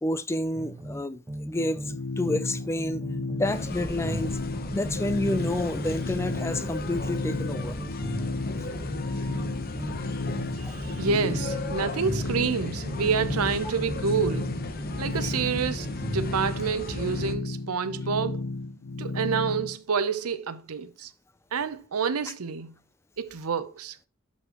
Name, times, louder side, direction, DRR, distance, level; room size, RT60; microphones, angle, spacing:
voice 1, 0.0-1.8 2.2-3.0 3.4-4.4 4.7-7.8 10.6-10.8 15.2-15.3, left 1 dB, 10° left, 0.3 m, -29 dB
sound 1, 0.6-2.0 2.3-6.0 6.3-10.0 10.3-14.0 14.3-16.4, right 1 dB, 15° right, 1.0 m, -38 dB
sound 2, 1.6-19.8, left 3 dB, 80° left, 0.7 m, -34 dB
sound 3, 3.4-17.3, left 2 dB, 40° left, 0.8 m, -35 dB
voice 2, 10.6-14.5 15.0-15.9 16.1-18.4 19.0-21.1 21.5-22.7 23.2-24.0, right 6 dB, 80° right, 0.7 m, -28 dB
12.0 x 4.3 x 2.9 m
head